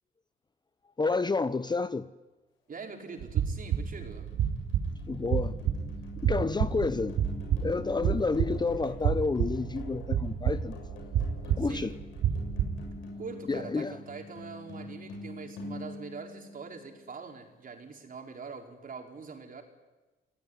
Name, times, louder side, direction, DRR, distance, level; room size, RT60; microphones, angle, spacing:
voice 1, 1.0-2.1 5.1-5.6 6.2-7.2 7.6-10.8 11.5-12.0 13.5-14.0, left 3 dB, 20° left, 0.8 m, -30 dB
voice 2, 2.7-4.3 11.6-11.9 13.1-19.6, right 4 dB, 45° right, 4.8 m, -43 dB
sound 1, 3.0-17.2, left 2 dB, 90° left, 7.1 m, -46 dB
sound 2, 3.2-13.0, right 8 dB, 85° right, 3.0 m, -30 dB
28.5 x 18.0 x 9.8 m
cardioid pair, 90°, 20 cm